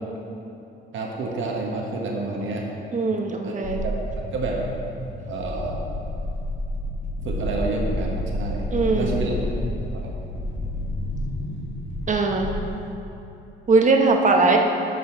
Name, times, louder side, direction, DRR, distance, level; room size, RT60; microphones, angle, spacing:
voice 1, 0.9-2.7 3.4-3.5 3.8-4.6 5.2-5.8 7.2-8.7 8.9-9.3 9.9-10.1, right 3 dB, 75° right, -1 dB, 1.5 m, -29 dB
voice 2, 2.9-3.8 8.7-9.2 12.1-12.5 13.7-14.6, right 3 dB, 40° right, 2 dB, 1.1 m, -20 dB
sound 1, 3.6-13.0, left 1 dB, 80° left, 1.3 m, -30 dB
13.5 x 5.4 x 4.0 m, 2.9 s
cardioid pair, 90°, 20 cm